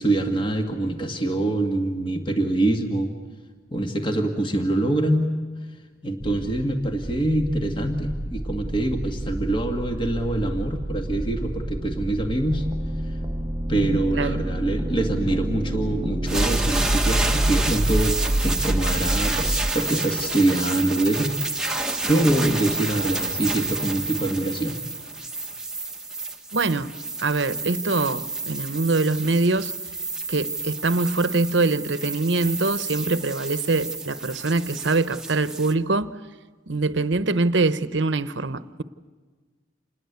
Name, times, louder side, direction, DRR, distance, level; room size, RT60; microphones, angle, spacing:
voice 1, 0.0-3.1 3.7-5.3 6.0-12.7 13.7-21.3 22.1-24.8, right 1 dB, 25° left, 4 dB, 2.1 m, -24 dB
sound 1, 6.2-14.4, right 1 dB, 40° left, 7.6 m, -33 dB
sound 2, 12.5-19.7, right 1 dB, 20° right, 0.7 m, -26 dB
sound 3, 16.3-35.7, right 3 dB, 5° right, 1.3 m, -30 dB
voice 2, 26.5-26.9 27.2-29.7 30.3-36.2 36.7-38.8, right 3 dB, 65° right, 14 dB, 1.0 m, -23 dB
28.0 x 20.5 x 8.2 m, 1.4 s
head